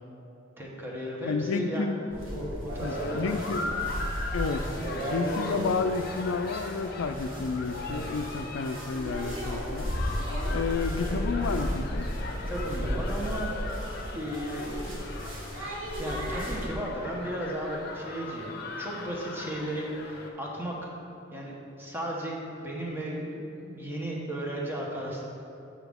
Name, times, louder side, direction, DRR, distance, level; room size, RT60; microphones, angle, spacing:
voice 1, 0.6-1.8 2.7-3.4 3.6-3.7 12.5-13.5 14.1-15.5 16.0-20.8 21.3-25.2, right 1 dB, 10° right, -3 dB, 1.1 m, -35 dB
voice 2, 1.2-2.1 2.8-3.7 4.3-4.7 5.1-9.9 10.5-12.1, left 4 dB, 80° left, 8 dB, 0.4 m, -31 dB
sound 1, 2.1-16.7, equal, 80° right, 1.7 m, -34 dB
sound 2, 2.8-20.3, left 3 dB, 50° left, 0.7 m, -39 dB
8.1 x 6.3 x 3.5 m, 2.8 s
head